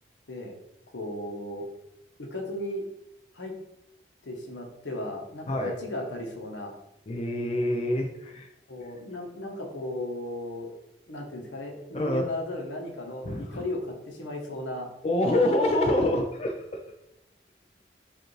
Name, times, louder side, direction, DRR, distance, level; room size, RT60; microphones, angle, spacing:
voice 1, 0.9-1.7 2.2-2.8 3.3-3.5 4.2-6.7 8.7-10.7 11.1-14.9, left 1 dB, 80° left, 2 dB, 0.9 m, -35 dB
voice 2, 7.1-8.5 11.9-12.2 13.3-13.6 15.0-16.5, left 1 dB, 35° left, 2 dB, 0.3 m, -26 dB
5.0 x 2.4 x 3.1 m, 0.84 s
head